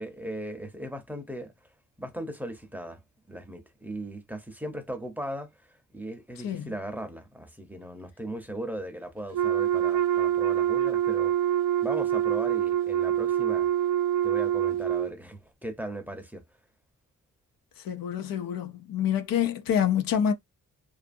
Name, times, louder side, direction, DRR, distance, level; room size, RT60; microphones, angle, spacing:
voice 1, 0.0-1.5 2.0-3.0 3.3-11.3 11.8-13.7 14.2-16.4, right 1 dB, 5° right, 0.6 m, -38 dB
Wind instrument woodwind instrument, 9.3-15.1, right 11 dB, 85° right, 0.5 m, -25 dB
voice 2, 17.8-20.3, left 9 dB, 90° left, 0.5 m, -27 dB
2.5 x 2.5 x 2.5 m
cardioid pair, 85°, 33 cm